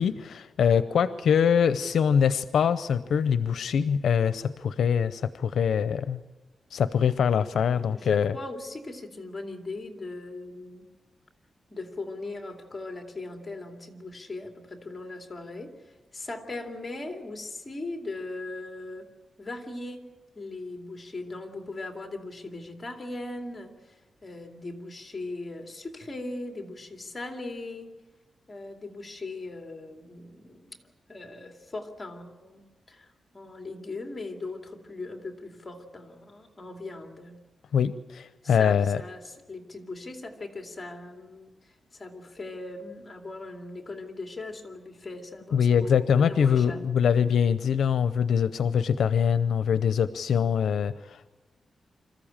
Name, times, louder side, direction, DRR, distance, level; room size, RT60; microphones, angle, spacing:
voice 1, 0.0-6.2 6.7-8.3 37.7-39.0 45.5-51.3, left 7 dB, 80° left, 13 dB, 0.6 m, -24 dB
voice 2, 7.9-10.9 11.7-19.1 19.4-20.0 20.4-24.0 24.2-27.9 28.5-30.8 31.1-33.1 33.3-37.4 38.4-41.5 41.9-46.8, left 2 dB, 20° left, 3 dB, 2.5 m, -39 dB
26.0 x 14.0 x 8.9 m, 1.2 s
wide cardioid pair, 160°, 0 cm